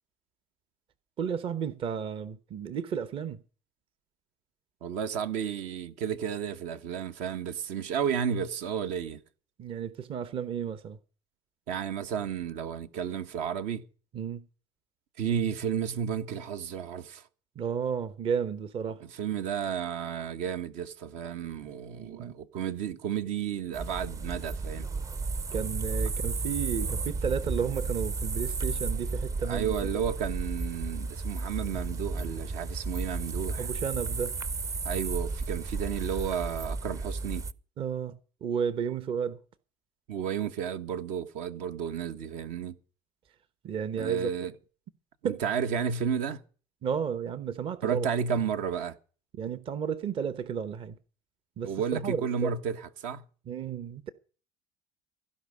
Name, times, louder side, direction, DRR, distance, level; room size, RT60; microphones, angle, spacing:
voice 1, 1.2-3.4 9.6-11.0 14.1-14.5 17.5-19.0 22.0-22.4 25.5-29.9 33.6-34.3 37.8-39.4 43.6-44.3 45.2-45.4 46.8-48.1 49.4-51.0 51.6-52.5 53.5-54.1, right 7 dB, 45° right, 1.0 m, -33 dB
voice 2, 4.8-9.2 11.7-13.8 15.2-17.2 19.2-24.9 29.5-33.7 34.8-37.4 40.1-42.8 44.0-44.5 45.2-46.4 47.8-48.9 51.6-53.2, right 8 dB, 75° right, 1.2 m, -32 dB
sound 1, 23.7-37.5, right 3 dB, 25° right, 0.6 m, -33 dB
16.0 x 5.5 x 9.7 m
supercardioid pair, 105°, 12 cm